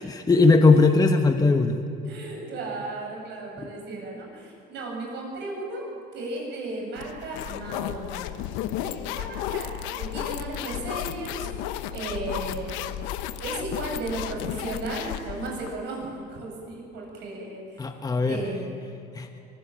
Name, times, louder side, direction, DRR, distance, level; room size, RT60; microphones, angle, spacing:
voice 1, 0.0-1.8 17.8-18.4 19.1-19.3, left 3 dB, 20° left, 5 dB, 1.4 m, -19 dB
voice 2, 2.0-5.8 6.1-8.3 8.8-11.4 11.7-12.7 13.4-17.8 18.2-18.7, right 2 dB, 65° right, -1 dB, 7.9 m, -35 dB
sound 1, 7.0-15.7, left 12 dB, 90° left, 1.0 m, -33 dB
23.5 x 15.5 x 8.9 m, 2.6 s
cardioid pair, 110°, 19 cm